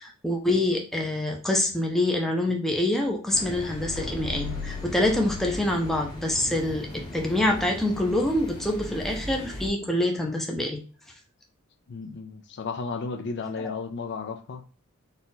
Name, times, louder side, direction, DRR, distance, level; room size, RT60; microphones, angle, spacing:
voice 1, 0.0-10.8 13.6-13.7, left 1 dB, ahead, 0.5 m, -26 dB
sound 1, 3.3-9.7, equal, 20° left, 1.1 m, -38 dB
sound 2, 3.8-6.3 6.7-6.8, left 4 dB, 65° right, 0.3 m, -39 dB
sound 3, 3.9-6.2, equal, 70° left, 1.3 m, -44 dB
voice 2, 11.9-14.6, left 4 dB, 50° left, 0.5 m, -33 dB
4.0 x 2.3 x 3.9 m
head